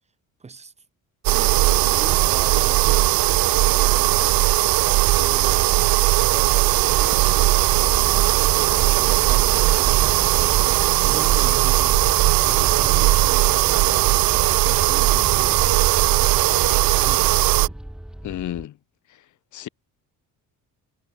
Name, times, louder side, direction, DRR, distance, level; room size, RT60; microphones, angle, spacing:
voice 1, 0.4-0.7 1.3-4.4 5.2-5.7 6.3-17.8, right 4 dB, 20° right, 7.6 m, -40 dB
sound 1, 1.2-17.7, right 18 dB, 85° right, 3.4 m, -18 dB
sound 2, 6.9-18.6, equal, ahead, 2.7 m, -35 dB
voice 2, 18.2-18.7 19.5-19.7, left 13 dB, 55° left, 5.8 m, -31 dB
cardioid pair, 160°, 34 cm